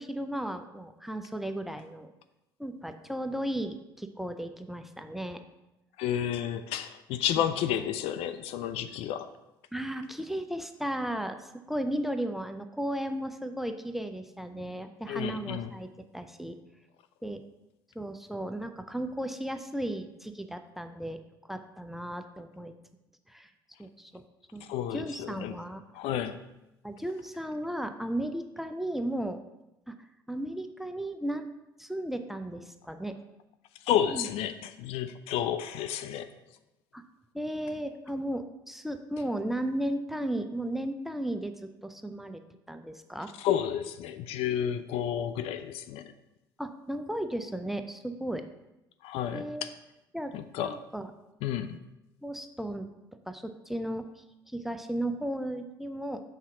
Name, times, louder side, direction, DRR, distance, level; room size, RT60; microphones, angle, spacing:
voice 1, 0.0-2.1 2.6-5.4 7.4-7.5 9.7-16.6 17.2-17.4 17.9-21.2 21.5-22.7 23.3-23.5 23.8-24.2 24.5-25.8 26.8-29.4 29.9-30.0 30.3-31.5 31.8-33.2 34.1-34.3 36.9-37.0 37.3-42.4 42.7-43.3 46.6-48.4 49.3-49.7 50.1-50.4 50.6-51.1 52.2-52.9 53.3-56.2, right 1 dB, ahead, 8 dB, 0.5 m, -35 dB
voice 2, 6.0-9.3 15.1-15.7 24.7-25.5 25.9-26.4 33.9-36.3 43.4-46.1 49.0-49.7 50.3-50.8 51.4-51.8, left 10 dB, 55° left, 10 dB, 0.4 m, -31 dB
5.7 x 3.6 x 5.7 m, 0.94 s
figure-of-eight pair, 60°, 12 cm